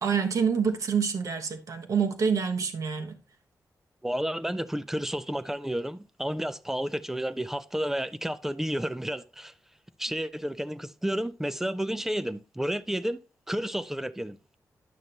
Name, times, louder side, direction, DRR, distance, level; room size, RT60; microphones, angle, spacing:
voice 1, 0.0-3.2, right 6 dB, 55° right, 1.2 m, -27 dB
voice 2, 4.0-9.5 10.0-13.2 13.5-14.4, equal, 5° right, 0.4 m, -31 dB
11.0 x 6.4 x 2.9 m
wide cardioid pair, 160°, 7 cm